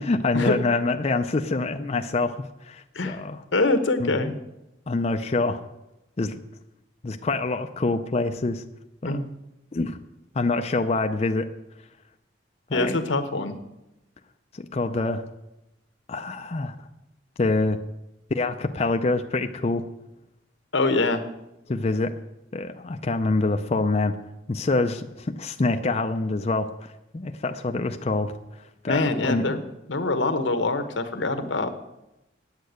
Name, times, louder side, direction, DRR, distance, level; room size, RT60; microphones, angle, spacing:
voice 1, 0.0-2.4 2.6-3.4 4.0-4.3 4.9-5.6 6.2-6.4 7.0-8.6 9.0-9.2 9.7-10.0 10.3-11.5 12.7-13.0 14.5-15.2 16.1-16.7 17.4-17.8 18.3-19.8 21.7-22.1 22.5-24.2 24.5-28.3 28.8-29.4, left 3 dB, 35° left, 6 dB, 0.5 m, -25 dB
voice 2, 3.5-4.3 9.0-9.3 12.7-13.6 20.7-21.2 28.9-31.7, left 2 dB, 85° left, 8 dB, 1.1 m, -24 dB
9.0 x 8.4 x 7.9 m, 0.92 s
head